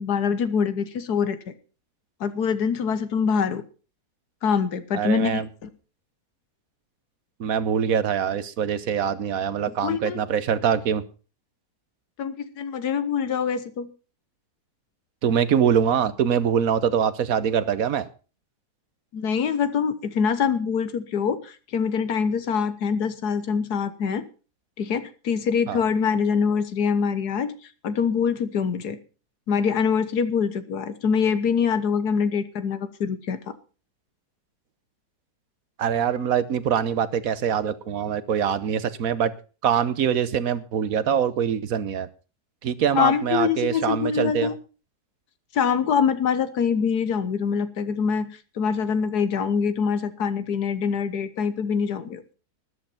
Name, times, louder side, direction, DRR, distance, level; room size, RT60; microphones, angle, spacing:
voice 1, 0.0-1.5 2.2-3.6 4.4-5.7 9.8-10.2 12.2-13.9 19.1-24.2 24.8-27.5 27.8-29.0 29.5-33.5 42.9-44.5 45.5-48.3 48.6-52.2, left 6 dB, 85° left, 12 dB, 1.7 m, -24 dB
voice 2, 4.9-5.5 7.4-11.0 15.2-18.1 25.7-25.8 35.8-39.3 39.6-42.1 42.6-44.5, right 8 dB, 65° right, 16 dB, 1.4 m, -23 dB
13.0 x 11.0 x 5.8 m, 0.36 s
omnidirectional pair, 1.7 m